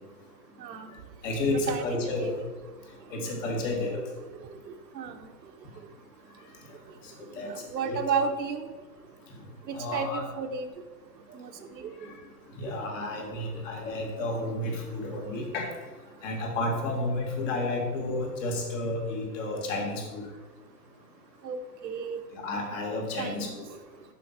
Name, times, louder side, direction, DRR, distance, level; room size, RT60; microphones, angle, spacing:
voice 1, 0.6-0.9 1.5-2.3 3.3-3.4 3.9-4.1 4.7-5.3 7.5-8.7 9.7-10.7 11.3-11.9 21.4-22.2 23.2-23.6, right 5 dB, 90° right, 6 dB, 1.0 m, -33 dB
voice 2, 1.2-2.3 3.1-4.0 7.2-7.5 7.8-8.0 9.7-10.2 12.0-12.1 12.6-15.7 16.2-20.2 22.3-23.6, left 2 dB, 50° left, 0 dB, 2.1 m, -31 dB
7.0 x 5.9 x 4.4 m, 1.3 s
hypercardioid pair, 140°, 49 cm